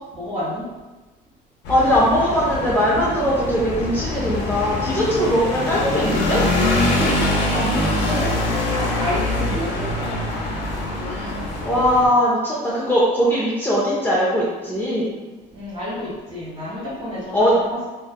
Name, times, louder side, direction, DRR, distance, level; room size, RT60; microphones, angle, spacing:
voice 1, 0.1-0.7 6.9-8.3 8.8-10.2 15.5-17.9, left 1 dB, 35° right, -6 dB, 1.5 m, -29 dB
sound 1, 1.6-12.1, left 1 dB, 85° left, 0.6 m, -24 dB
voice 2, 1.7-6.4 11.1-11.3 11.6-15.1 17.3-17.5, equal, 10° left, -7 dB, 0.5 m, -20 dB
3.2 x 2.2 x 2.2 m, 1.2 s
cardioid pair, 110°, 17 cm